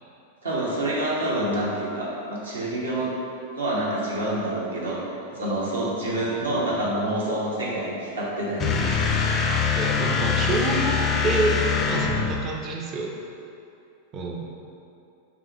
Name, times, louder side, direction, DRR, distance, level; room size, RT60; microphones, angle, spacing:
voice 1, 0.4-3.1 3.5-5.0 5.3-9.3, right 1 dB, 75° right, -5 dB, 0.9 m, -27 dB
voice 2, 5.3-5.7 6.2-6.7 9.8-13.1 14.1-14.5, right 2 dB, 30° right, 0 dB, 0.5 m, -28 dB
sound 1, 8.6-12.5, left 5 dB, 25° left, 0.4 m, -23 dB
5.8 x 2.2 x 2.9 m, 2.7 s
figure-of-eight pair, 90°, 0 cm